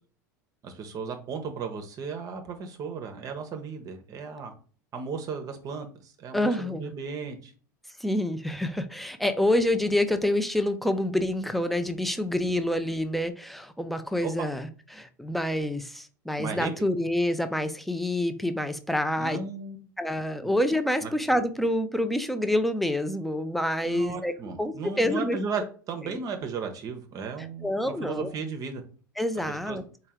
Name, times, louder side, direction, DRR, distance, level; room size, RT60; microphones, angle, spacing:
voice 1, 0.6-4.5 4.9-7.5 14.2-14.5 16.4-16.7 19.2-19.9 20.4-20.5 21.0-21.1 23.8-28.8 29.5-29.8, right 5 dB, 35° right, 0.7 m, -35 dB
voice 2, 6.3-6.9 8.0-19.4 20.0-24.3 24.6-25.4 26.1-26.2 27.6-28.3 29.2-29.8, left 1 dB, ahead, 0.4 m, -27 dB
4.4 x 2.2 x 3.4 m
figure-of-eight pair, 75°, 10 cm